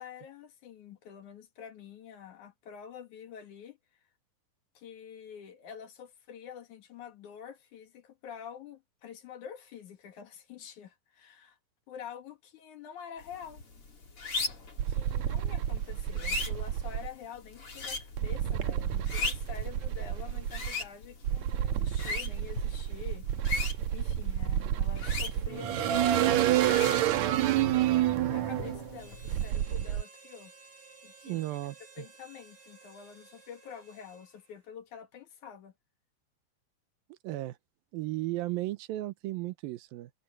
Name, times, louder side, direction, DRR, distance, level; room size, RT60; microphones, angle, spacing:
voice 1, 0.0-3.8 4.7-11.6 11.9-13.6 14.9-23.3 23.9-27.2 28.3-30.5 31.0-31.4 32.0-35.7, left 8 dB, 60° left, 3.1 m, -47 dB
sound 1, 13.2-29.5, left 3 dB, 40° left, 4.7 m, -40 dB
sound 2, 14.8-17.1 18.2-20.7 21.2-30.0, right 11 dB, 65° right, 2.0 m, -29 dB
Harmonica, 28.9-34.6, right 4 dB, 45° right, 7.6 m, -55 dB
voice 2, 31.2-32.1 37.1-37.6 37.9-40.1, right 16 dB, 90° right, 2.7 m, -35 dB
omnidirectional pair, 4.1 m